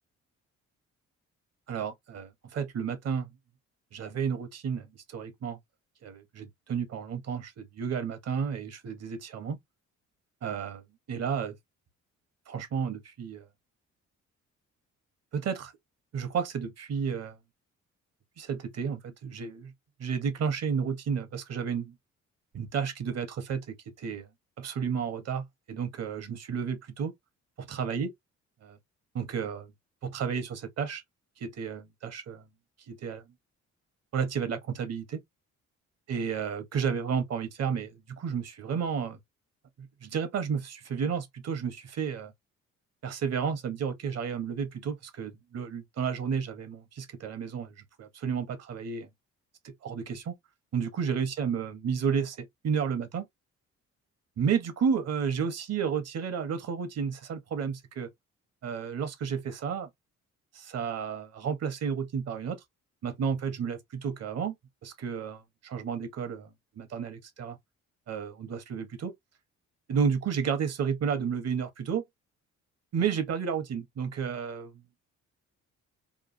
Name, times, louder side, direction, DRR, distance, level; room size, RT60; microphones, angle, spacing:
voice 1, 1.7-3.3 3.9-5.6 6.0-9.6 10.4-11.6 12.5-13.5 15.3-15.7 16.1-17.4 18.4-19.7 20.0-22.0 22.5-24.3 24.6-27.1 27.7-28.1 28.6-28.8 29.1-29.7 30.0-31.0 31.4-32.5 32.9-33.2 34.1-35.2 36.1-39.2 39.8-42.3 43.0-49.1 49.6-50.3 50.7-53.3 54.4-58.1 58.6-59.9 60.5-62.6 63.0-64.5 64.8-67.6 68.1-69.1 69.9-72.0 72.9-74.8, right 6 dB, 55° right, 0.9 m, -32 dB
3.0 x 2.3 x 2.5 m
cardioid pair, 90°, 30 cm